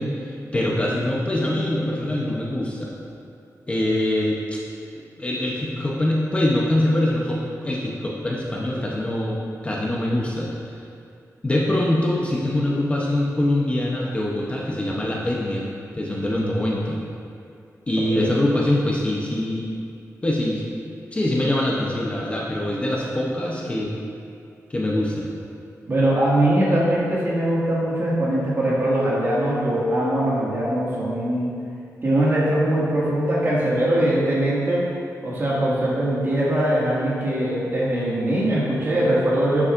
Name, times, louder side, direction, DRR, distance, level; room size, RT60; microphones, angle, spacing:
voice 1, 0.0-2.9 3.7-4.6 5.2-9.4 9.6-10.5 11.4-17.0 17.9-19.7 20.2-20.6 21.1-24.0 24.7-25.3, left 1 dB, 20° left, -4 dB, 0.8 m, -23 dB
voice 2, 25.9-31.5 32.0-34.8 35.2-39.6, right 1 dB, 40° right, -7 dB, 2.0 m, -21 dB
11.0 x 7.2 x 2.6 m, 2.5 s
wide cardioid pair, 165°, 6 cm